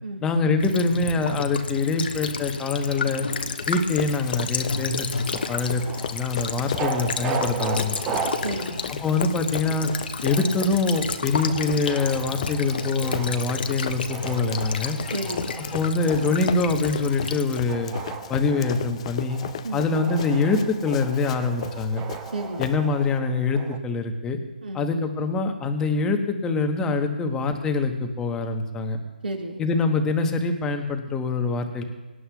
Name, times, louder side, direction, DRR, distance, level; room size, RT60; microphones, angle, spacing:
voice 1, 0.2-3.3 3.7-5.1 5.5-5.8 6.1-7.9 8.9-9.9 10.2-15.0 15.7-17.9 18.3-19.4 19.7-22.0 22.6-24.4 24.7-29.0 29.6-31.8, left 3 dB, 10° left, 5 dB, 1.0 m, -24 dB
Child speech kid speaking / Bird vocalization bird call bird song / Stream, 0.6-17.6, left 4 dB, 65° left, 1.0 m, -32 dB
Run, 3.3-23.2, left 9 dB, 35° left, 0.4 m, -36 dB
sound 1, 5.3-23.8, right 6 dB, 15° right, 0.8 m, -37 dB
voice 2, 8.4-8.8 15.1-15.5 19.6-19.8 22.3-22.7 24.6-24.8 29.2-29.6, right 2 dB, 70° right, -2 dB, 4.8 m, -31 dB
24.0 x 11.0 x 2.3 m, 1.2 s
figure-of-eight pair, 150°, 6 cm